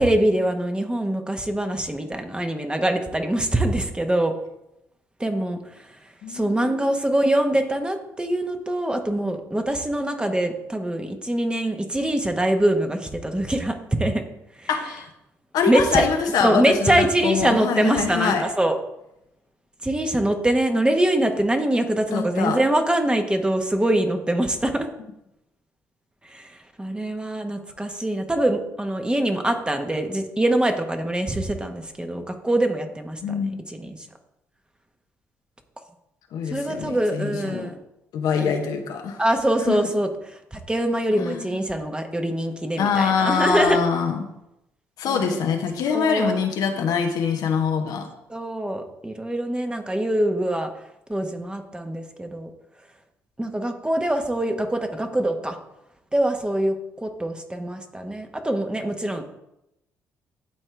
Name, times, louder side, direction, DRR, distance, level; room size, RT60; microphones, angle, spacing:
voice 1, 0.0-4.3 5.2-5.6 6.3-14.2 15.7-16.0 16.4-18.8 19.8-24.9 26.3-26.4 26.8-33.2 33.8-34.0 36.5-37.8 38.4-38.5 39.2-40.1 40.5-43.8 45.0-45.4 45.9-46.4 48.3-50.7 51.1-52.5 53.4-55.6 56.1-56.7 57.0-59.2, right 1 dB, 15° right, 5 dB, 1.3 m, -23 dB
voice 2, 6.2-6.9 14.7-15.1 15.5-18.4 22.1-22.6 33.2-33.6 36.3-37.7 38.1-39.2 39.6-39.8 41.2-41.6 42.8-44.2 45.0-48.1, left 6 dB, 65° left, 4 dB, 1.1 m, -24 dB
11.5 x 4.4 x 3.4 m, 0.86 s
hypercardioid pair, 50°, 7 cm